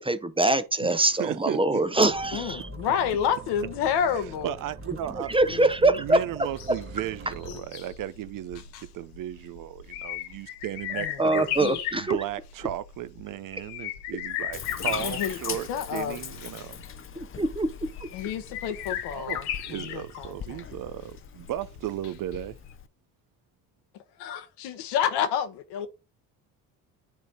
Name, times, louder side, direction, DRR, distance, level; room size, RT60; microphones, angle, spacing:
voice 1, 0.0-2.7 5.1-6.2 10.9-12.2 17.2-17.7, right 2 dB, 10° right, 0.8 m, -24 dB
voice 2, 1.2-1.8 4.4-5.3 6.0-8.6 8.9-11.4 11.9-16.8 19.1-22.6, right 12 dB, 45° right, 0.6 m, -35 dB
sound 1, 2.0-7.6, right 3 dB, 30° right, 1.5 m, -43 dB
voice 3, 2.3-4.5 5.5-6.0 7.5-7.6 11.0-11.2 11.6-11.8 15.0-16.2 18.1-20.6 24.2-25.9, left 8 dB, 65° left, 1.1 m, -30 dB
sound 2, 6.4-22.4 22.7-22.8, left 11 dB, 80° left, 1.1 m, -37 dB
Bathtub (filling or washing), 14.5-22.9, left 8 dB, 30° left, 0.7 m, -41 dB
9.6 x 3.2 x 4.0 m
hypercardioid pair, 55°, 44 cm